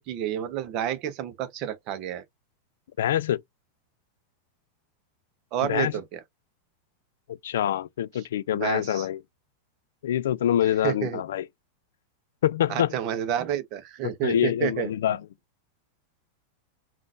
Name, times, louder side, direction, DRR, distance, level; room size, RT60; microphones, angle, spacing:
voice 1, 0.0-2.2 5.5-6.2 8.5-9.1 10.8-11.2 12.7-14.9, right 11 dB, 35° right, 0.7 m, -30 dB
voice 2, 3.0-3.4 5.6-5.9 7.4-9.2 10.0-11.5 12.4-12.9 14.2-15.2, left 11 dB, 90° left, 0.3 m, -25 dB
3.7 x 2.4 x 2.5 m
supercardioid pair, 170°, 0 cm